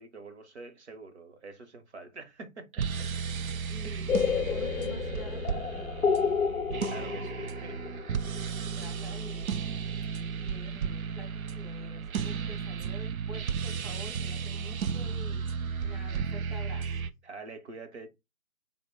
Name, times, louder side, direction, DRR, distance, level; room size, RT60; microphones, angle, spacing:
voice 1, 0.0-3.1 3.8-4.1 6.7-7.8 12.8-12.9 17.2-18.1, right 3 dB, 50° right, 0.8 m, -46 dB
sound 1, 2.7-17.1, right 6 dB, 75° right, 0.5 m, -34 dB
voice 2, 3.7-6.6 8.8-9.7 10.3-15.4 15.8-17.1, left 1 dB, ahead, 0.4 m, -48 dB
sound 2, 4.1-9.8, left 6 dB, 65° left, 0.5 m, -31 dB
3.8 x 2.1 x 3.3 m
hypercardioid pair, 175°, 42 cm